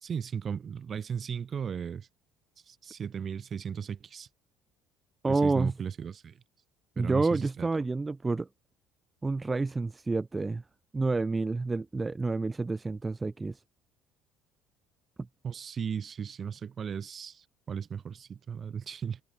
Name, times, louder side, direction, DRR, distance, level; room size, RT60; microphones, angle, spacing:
voice 1, 0.0-2.1 2.7-4.3 5.3-6.4 7.0-7.8 15.4-19.2, right 7 dB, 30° right, 1.8 m, -36 dB
voice 2, 5.2-5.7 7.0-8.5 9.2-10.6 10.9-13.6, right 3 dB, 15° right, 1.0 m, -29 dB
cardioid pair, 140°, 0 cm